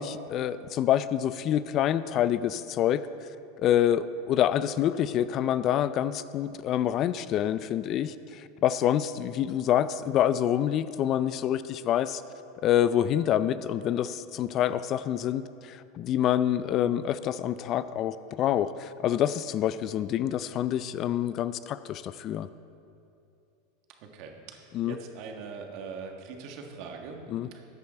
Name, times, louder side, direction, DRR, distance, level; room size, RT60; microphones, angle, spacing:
voice 1, 0.0-3.0 3.6-12.2 12.6-22.5 24.7-25.0 27.3-27.5, left 10 dB, 40° left, 15 dB, 0.4 m, -27 dB
voice 2, 24.0-27.2 27.5-27.6, right 5 dB, 60° right, 3 dB, 1.6 m, -42 dB
14.0 x 8.9 x 4.3 m, 2.7 s
supercardioid pair, 120°, 0 cm